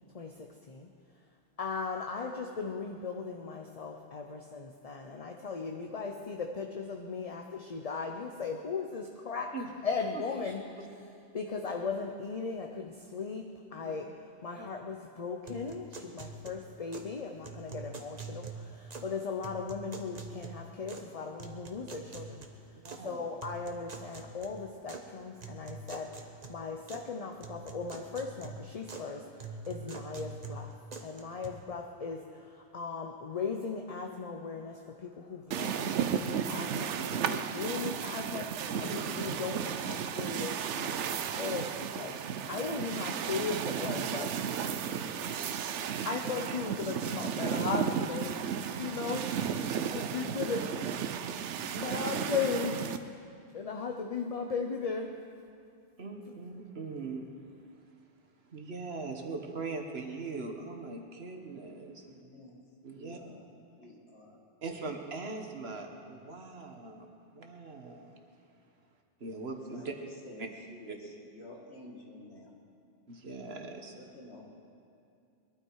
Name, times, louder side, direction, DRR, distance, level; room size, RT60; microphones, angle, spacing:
voice 1, 0.1-0.9 1.6-9.5 9.8-10.6 11.3-14.1 14.4-22.4 23.0-26.2 26.5-29.3 29.7-30.8 31.0-32.2 32.7-44.4 46.0-48.4 48.8-49.3 49.9-50.8 51.3-51.5 51.8-52.9 53.5-55.1, left 5 dB, 35° left, 3 dB, 0.8 m, -37 dB
sound 1, 15.5-17.1 17.4-19.1 19.4-21.1 21.4-23.0 23.4-25.0 25.4-27.1 27.4-29.1 29.4-31.5, right 4 dB, 40° right, 1.2 m, -45 dB
voice 2, 22.8-23.2 38.8-38.9 49.6-50.4 51.7-52.0 56.0-57.3 58.5-62.0 62.8-63.2 64.6-68.2 69.2-70.0 70.4-70.5 70.9-71.0 73.1-73.9, right 3 dB, 60° right, 3 dB, 1.6 m, -41 dB
sound 2, 35.5-53.0, right 8 dB, 85° right, 1.0 m, -34 dB
voice 3, 62.1-62.6 62.9-63.4 63.8-64.4 70.3-70.4 70.8-71.0 71.4-72.5 74.1-74.5, left 2 dB, 70° left, -1 dB, 2.4 m, -50 dB
21.0 x 12.5 x 4.8 m, 2.5 s
omnidirectional pair, 1.2 m